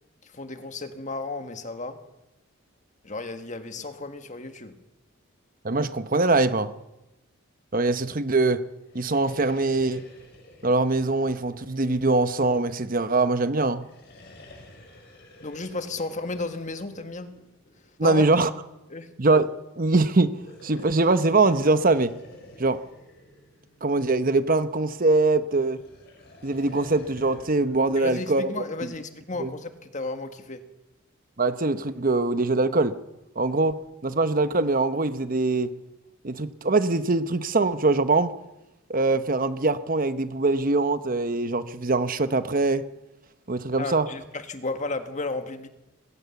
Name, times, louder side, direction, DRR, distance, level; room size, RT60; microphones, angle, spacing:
voice 1, 0.2-2.0 3.0-4.8 15.4-17.3 18.0-18.2 18.9-19.1 28.0-30.6 43.8-45.7, left 3 dB, 35° left, 8 dB, 1.7 m, -33 dB
voice 2, 5.6-6.7 7.7-8.6 8.9-10.1 10.6-13.9 18.0-18.5 19.2-19.5 19.8-22.1 22.6-22.8 23.8-25.8 26.4-28.5 29.4-29.5 31.4-32.9 33.4-35.7 36.2-38.3 38.9-42.8 43.5-44.1, right 3 dB, 40° right, 12 dB, 0.9 m, -23 dB
sound 1, 8.8-12.4 13.7-18.0 20.2-24.2 25.5-27.8, left 1 dB, 50° left, 7.3 m, -50 dB
21.0 x 17.5 x 7.1 m, 0.95 s
head